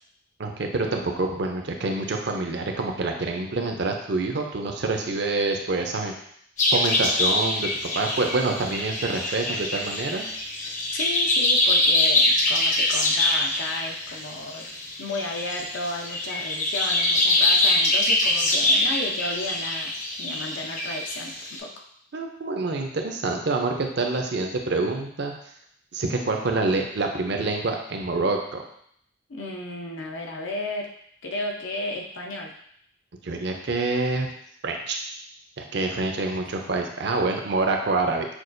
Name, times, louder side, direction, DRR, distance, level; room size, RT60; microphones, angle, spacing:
voice 1, 0.4-6.1 6.7-7.7 7.9-10.3 22.1-25.3 25.9-28.6 33.2-34.3 34.6-35.0 35.6-38.3, right 3 dB, 60° right, 3 dB, 0.6 m, -26 dB
sound 1, 6.6-21.6, left 2 dB, 40° left, 0.7 m, -24 dB
voice 2, 10.7-14.7 15.0-21.7 29.3-30.9 31.2-32.5, left 2 dB, 85° left, 0 dB, 0.7 m, -33 dB
6.0 x 2.3 x 2.6 m, 0.67 s
head